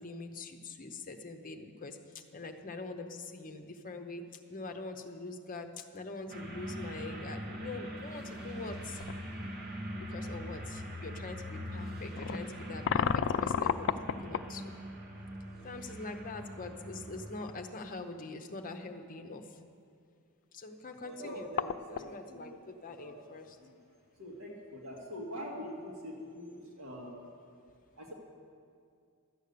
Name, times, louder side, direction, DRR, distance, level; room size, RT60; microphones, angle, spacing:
voice 1, 0.0-9.0 9.9-14.8 15.6-19.4 20.5-23.6, left 3 dB, 40° left, 6 dB, 0.8 m, -44 dB
sound 1, 6.3-17.7, equal, 45° right, 1.3 m, -42 dB
sound 2, 9.0-9.2 10.0-10.1 12.2-14.5 17.0-17.1 17.4-17.5 20.9-21.0 21.2-22.1, left 8 dB, 55° left, 0.3 m, -32 dB
voice 2, 21.0-22.6 22.9-23.8 24.2-27.2 28.0-28.1, equal, 65° right, -2 dB, 1.9 m, -44 dB
12.5 x 8.1 x 6.7 m, 2.3 s
head